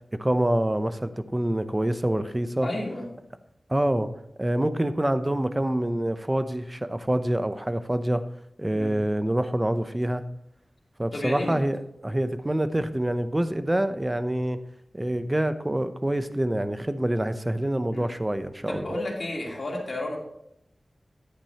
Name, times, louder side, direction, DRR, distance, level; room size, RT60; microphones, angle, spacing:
voice 1, 0.2-2.7 3.7-4.1 4.4-8.2 8.6-10.2 11.0-14.6 14.9-18.9, right 1 dB, 20° right, 11 dB, 0.7 m, -26 dB
voice 2, 2.6-3.1 8.7-9.0 11.1-11.6 17.9-18.1 18.7-20.2, left 1 dB, 55° left, -2 dB, 2.9 m, -32 dB
10.0 x 8.9 x 2.9 m, 0.77 s
wide cardioid pair, 65°, 0 cm